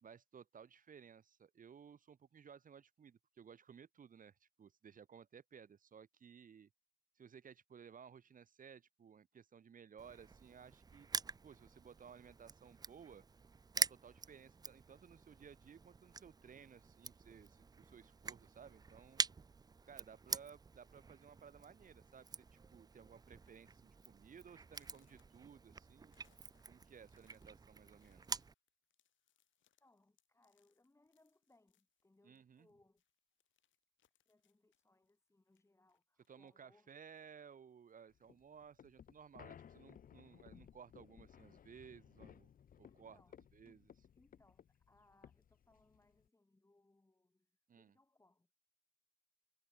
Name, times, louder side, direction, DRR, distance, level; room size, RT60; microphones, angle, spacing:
voice 1, 0.0-6.7 7.1-11.1 11.4-13.2 13.7-19.2 19.8-22.3 22.7-26.1 26.7-28.4 32.2-32.7 36.3-42.5 42.8-43.2 43.5-43.9 47.7-47.9, right 7 dB, 45° right, 1.2 m, -58 dB
Crushing, 10.0-28.5, right 4 dB, 20° right, 0.4 m, -46 dB
sound 1, 20.2-20.5 21.3-21.4 21.8-22.0 22.3-22.8 23.2-23.3 23.8-23.9 24.6-32.7 33.0-36.7 37.1-38.1, left 12 dB, 75° left, 5.2 m, -81 dB
voice 2, 29.8-33.0 34.2-36.9 42.8-43.9 44.1-48.5, left 2 dB, 15° left, 3.4 m, -72 dB
sound 2, 38.2-46.3, left 8 dB, 45° left, 0.8 m, -60 dB
cardioid pair, 90°, 20 cm